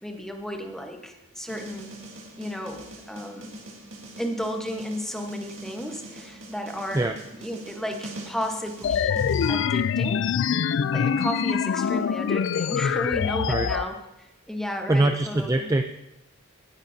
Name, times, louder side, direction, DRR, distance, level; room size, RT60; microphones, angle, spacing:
voice 1, 0.0-1.9 2.4-3.5 4.2-7.1 7.4-9.2 9.5-10.3 10.9-15.7, equal, ahead, 2 dB, 1.1 m, -33 dB
sound 1, 1.5-9.5, right 2 dB, 70° right, 2.1 m, -43 dB
sound 2, 8.8-13.8, left 7 dB, 65° left, 0.3 m, -24 dB
voice 2, 14.9-15.8, right 2 dB, 15° right, 6 dB, 0.4 m, -22 dB
18.0 x 9.0 x 2.8 m, 0.90 s
head